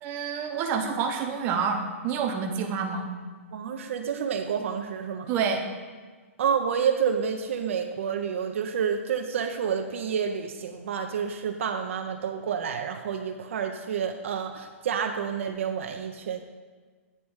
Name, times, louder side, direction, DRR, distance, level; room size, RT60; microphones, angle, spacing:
voice 1, 0.0-3.1 5.3-5.6, right 6 dB, 25° right, 2 dB, 0.7 m, -28 dB
voice 2, 3.5-5.3 6.4-16.4, right 7 dB, 65° right, 5 dB, 0.5 m, -29 dB
8.7 x 3.1 x 4.7 m, 1.5 s
hypercardioid pair, 145°, 8 cm